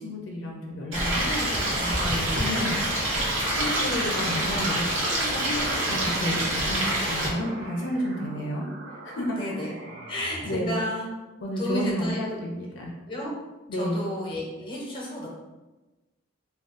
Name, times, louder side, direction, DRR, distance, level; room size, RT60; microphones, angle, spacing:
voice 1, 0.0-2.8 3.5-8.7 9.0-9.4 10.4-10.8 11.4-13.0 13.7-14.0, equal, 75° left, -1 dB, 0.5 m, -31 dB
Stream, 0.9-7.3, right 1 dB, 90° right, 1.0 m, -26 dB
sound 1, 3.7-10.6, right 2 dB, 65° right, 0.6 m, -40 dB
voice 2, 9.4-9.7 10.1-11.1 11.6-12.2 13.1-13.3 13.7-15.3, equal, 25° left, -4 dB, 0.8 m, -31 dB
2.5 x 2.3 x 3.7 m, 1.1 s
head